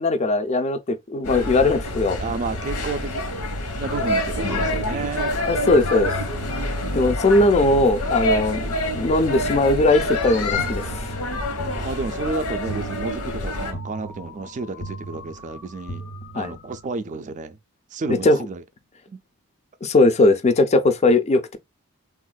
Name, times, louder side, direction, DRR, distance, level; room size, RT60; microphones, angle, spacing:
voice 1, 0.0-2.2 5.5-6.1 6.9-11.1 16.4-16.5 18.2-18.4 19.8-21.6, left 2 dB, 30° left, 0.4 m, -19 dB
sound 1, 1.2-13.7, left 1 dB, 85° left, 1.1 m, -27 dB
voice 2, 2.2-3.3 3.8-5.4 11.8-16.0 16.3-17.6 17.9-18.6 19.1-19.2, right 3 dB, 35° right, 0.4 m, -31 dB
sound 2, 10.5-16.9, right 1 dB, 70° left, 0.8 m, -38 dB
Drum, 10.6-12.4, right 5 dB, 90° right, 0.5 m, -42 dB
3.5 x 2.4 x 2.2 m
head